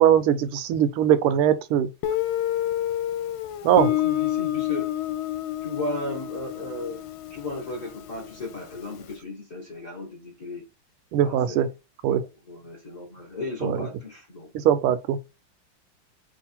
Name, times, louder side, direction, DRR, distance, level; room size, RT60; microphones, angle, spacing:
voice 1, 0.0-1.9 3.6-3.9 11.1-11.7 12.0-12.2 13.6-13.9 14.5-15.2, right 10 dB, 85° right, 1.5 m, -21 dB
Guitar, 2.0-8.7, left 13 dB, 80° left, 1.3 m, -29 dB
voice 2, 3.8-4.9 5.6-7.0 7.3-10.6 11.2-11.6 12.1-14.5, left 2 dB, 50° left, 0.4 m, -35 dB
3.6 x 2.5 x 4.1 m
omnidirectional pair, 2.4 m